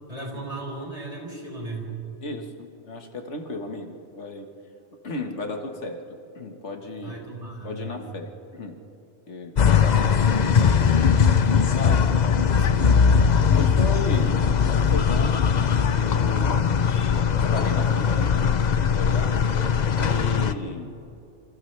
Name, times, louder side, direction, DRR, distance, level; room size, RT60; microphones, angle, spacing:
voice 1, 0.1-2.0 7.0-8.1 9.6-10.9 12.3-12.8, right 2 dB, 30° right, -2 dB, 4.8 m, -36 dB
voice 2, 2.2-4.5 5.0-6.0 6.4-7.2 7.6-8.7 9.3-10.1 10.4-10.6 11.7-12.1 13.5-15.5 15.9-16.9 17.4-18.4 18.9-19.4 20.0-20.9, left 2 dB, 75° left, 3 dB, 1.9 m, -34 dB
sound 1, 9.6-20.5, left 6 dB, 45° left, 0.7 m, -20 dB
28.5 x 27.5 x 3.4 m, 2.9 s
omnidirectional pair, 1.2 m